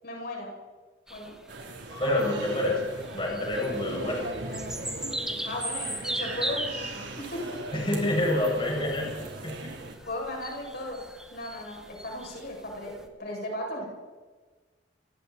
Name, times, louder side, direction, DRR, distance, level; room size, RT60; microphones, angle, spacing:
voice 1, 0.0-0.5 1.1-1.3 5.5-7.6 10.1-11.0 11.3-12.9 13.2-13.9, left 1 dB, 55° left, -1 dB, 7.5 m, -36 dB
sound 1, 1.1-13.0, right 1 dB, 5° right, 1.9 m, -39 dB
sound 2, 1.5-9.9, right 2 dB, 65° right, 3.9 m, -39 dB
voice 2, 2.0-2.8 3.1-4.2 7.7-9.1 9.4-9.7, left 1 dB, 30° left, -3 dB, 7.6 m, -27 dB
29.5 x 23.0 x 4.5 m, 1.3 s
head